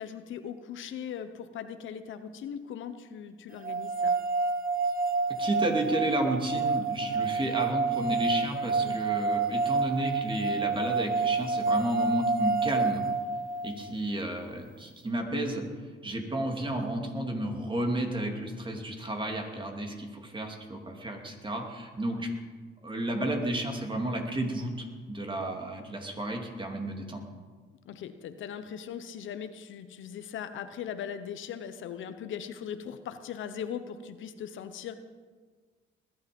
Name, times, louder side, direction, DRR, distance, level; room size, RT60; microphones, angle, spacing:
voice 1, 0.0-4.2 8.8-9.0 22.1-22.2 27.9-35.0, left 8 dB, 75° left, 10 dB, 1.1 m, -39 dB
sound 1, 3.6-13.8, right 4 dB, 45° right, 1.9 m, -28 dB
voice 2, 5.4-13.0 13.6-15.6 16.0-22.3 22.8-27.3, right 1 dB, 25° right, 2 dB, 3.0 m, -32 dB
20.5 x 11.5 x 5.4 m, 1.5 s
cardioid pair, 90°, 20 cm